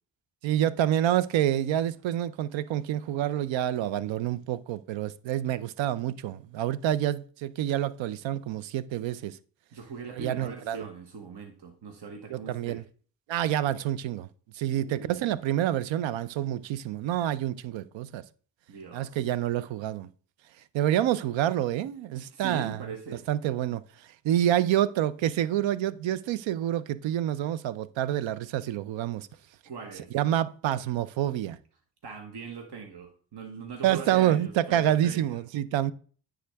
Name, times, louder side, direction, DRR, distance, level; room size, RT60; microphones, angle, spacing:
voice 1, 0.4-9.4 10.1-10.8 12.3-12.8 13.3-14.3 14.5-18.2 18.9-20.1 20.7-22.8 23.3-29.3 30.1-31.6 33.8-35.9, right 12 dB, 85° right, 0.5 m, -27 dB
voice 2, 9.7-12.8 14.7-15.3 18.7-19.2 22.3-23.2 29.6-30.1 32.0-35.4, right 5 dB, 65° right, 1.3 m, -41 dB
9.5 x 3.8 x 3.4 m
cardioid pair, 60°, 44 cm